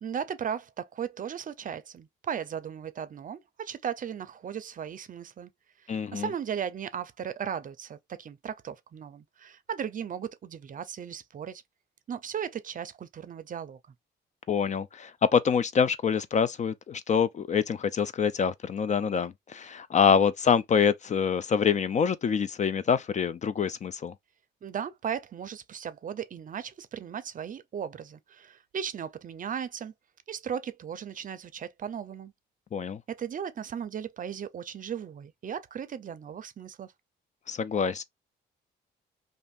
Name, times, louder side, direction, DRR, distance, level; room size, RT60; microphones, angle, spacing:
voice 1, 0.0-5.5 5.9-11.6 12.1-13.8 24.6-29.9 30.3-32.3 33.1-36.9, right 8 dB, 45° right, 0.5 m, -36 dB
voice 2, 5.9-6.3 14.5-24.1 32.7-33.0 37.5-38.0, left 7 dB, 35° left, 0.4 m, -26 dB
2.6 x 2.5 x 3.4 m
cardioid pair, 90°, 20 cm